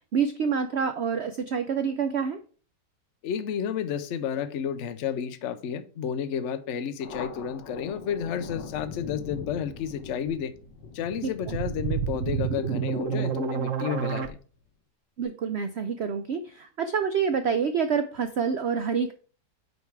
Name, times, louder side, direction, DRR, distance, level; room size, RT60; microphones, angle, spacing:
voice 1, 0.1-2.4 11.5-11.6 15.2-19.1, right 6 dB, 90° right, 9 dB, 0.5 m, -27 dB
voice 2, 3.2-10.5 10.9-14.4, left 8 dB, 60° left, 11 dB, 0.8 m, -31 dB
Thunder, 7.0-14.1, left 6 dB, 85° left, 1.6 m, -42 dB
sound 1, 11.0-14.3, right 7 dB, 60° right, 0.9 m, -29 dB
9.3 x 3.6 x 4.6 m, 0.39 s
omnidirectional pair, 1.9 m